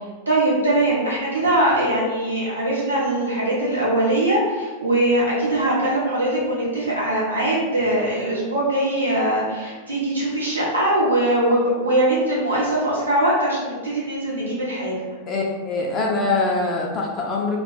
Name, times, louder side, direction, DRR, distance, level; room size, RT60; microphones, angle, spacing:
voice 1, 0.3-14.9, right 1 dB, 80° right, -6 dB, 0.8 m, -21 dB
voice 2, 15.3-17.6, left 3 dB, 30° left, -1 dB, 0.4 m, -23 dB
2.2 x 2.0 x 3.1 m, 1.3 s
figure-of-eight pair, 90°, 0 cm